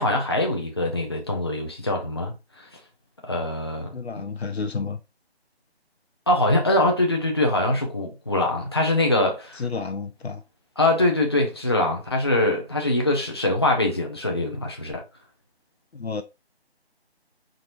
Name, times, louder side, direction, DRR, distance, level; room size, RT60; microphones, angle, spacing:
voice 1, 0.0-2.6 3.2-3.9 6.3-9.7 10.8-15.0, left 1 dB, 25° left, 0.5 m, -23 dB
voice 2, 3.9-5.0 9.6-10.4 15.9-16.2, left 4 dB, 75° left, 0.6 m, -30 dB
4.5 x 3.7 x 2.5 m
figure-of-eight pair, 155°, 32 cm